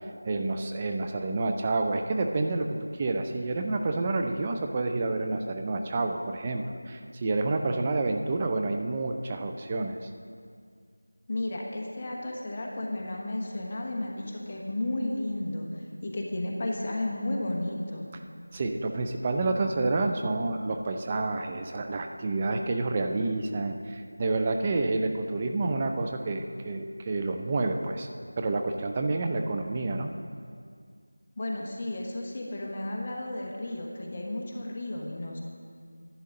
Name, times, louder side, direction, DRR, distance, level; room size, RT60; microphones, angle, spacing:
voice 1, 0.2-10.1 18.5-28.1 28.4-30.1, right 2 dB, 20° right, 4 dB, 0.4 m, -29 dB
voice 2, 11.3-18.1 31.4-35.4, left 1 dB, 25° left, -1 dB, 1.1 m, -33 dB
11.0 x 9.6 x 3.8 m, 2.1 s
figure-of-eight pair, 175°, 0 cm